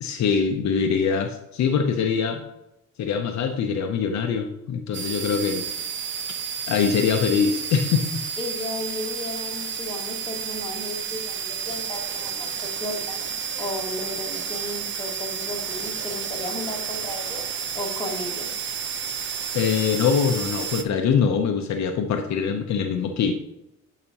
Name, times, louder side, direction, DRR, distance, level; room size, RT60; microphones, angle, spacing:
voice 1, 0.0-2.4 3.0-5.7 6.7-8.2 19.5-23.4, left 6 dB, 65° left, 4 dB, 0.7 m, -23 dB
sound 1, 4.9-20.8, right 7 dB, 40° right, 0.7 m, -31 dB
voice 2, 8.4-17.5 17.7-18.5, left 2 dB, 15° left, -1 dB, 1.9 m, -34 dB
9.6 x 5.0 x 2.9 m, 0.89 s
cardioid pair, 90°, 30 cm